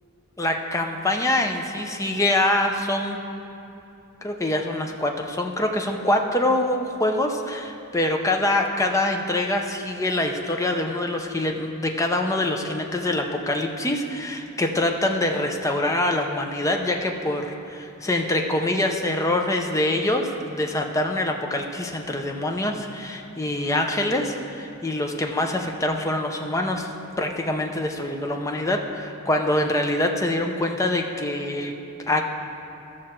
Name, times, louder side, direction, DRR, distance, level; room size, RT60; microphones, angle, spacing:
voice 1, 0.4-3.2 4.2-26.9 27.2-31.7 32.1-32.2, left 1 dB, 15° left, 3 dB, 0.6 m, -25 dB
14.5 x 6.3 x 4.4 m, 2.8 s
head